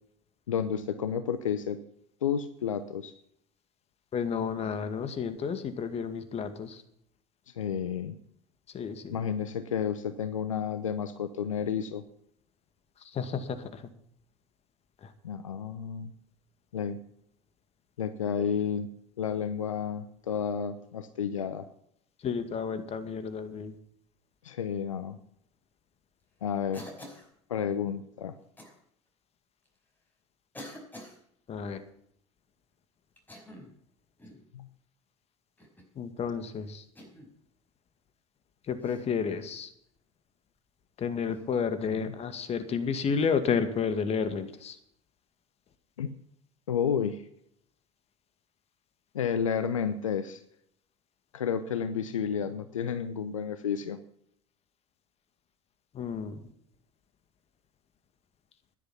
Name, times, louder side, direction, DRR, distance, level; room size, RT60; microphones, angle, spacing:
voice 1, 0.5-1.8 2.2-3.1 7.5-8.2 9.1-12.0 15.2-16.1 16.7-17.0 18.0-18.9 19.2-21.7 24.4-25.2 26.4-26.9 27.5-28.4 34.5-34.7 41.9-42.1 46.0-46.1 46.7-47.2 49.1-50.4 51.3-54.0, left 7 dB, 85° left, 11 dB, 0.8 m, -31 dB
voice 2, 4.1-6.8 8.7-9.2 13.1-13.8 15.0-15.1 22.2-23.7 31.5-31.8 36.0-36.8 38.7-39.7 41.0-44.8 55.9-56.4, left 6 dB, 40° left, 10 dB, 2.2 m, -31 dB
Cough, 26.7-27.3 28.6-28.8 29.7-29.8 30.5-31.2 33.2-33.8 34.2-34.5 35.6-35.9 37.0-37.3 38.8-39.1 41.3-41.4 43.1-43.3, left 1 dB, 10° left, 5.2 m, -47 dB
13.0 x 11.0 x 5.8 m, 0.70 s
hypercardioid pair, 70°, 16 cm